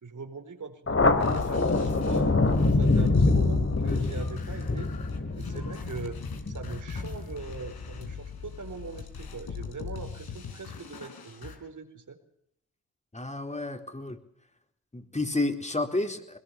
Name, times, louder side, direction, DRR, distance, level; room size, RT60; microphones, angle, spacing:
voice 1, 0.0-4.9 5.3-12.2, right 4 dB, 55° right, 8 dB, 4.7 m, -41 dB
Thunder, 0.9-7.9, left 3 dB, 35° left, 3.2 m, -25 dB
sound 1, 1.2-11.6, left 5 dB, 75° left, 4.5 m, -40 dB
voice 2, 13.1-14.2 14.9-16.4, left 2 dB, 20° left, 5 dB, 4.0 m, -30 dB
21.5 x 20.0 x 7.2 m, 0.72 s
cardioid pair, 60°, 37 cm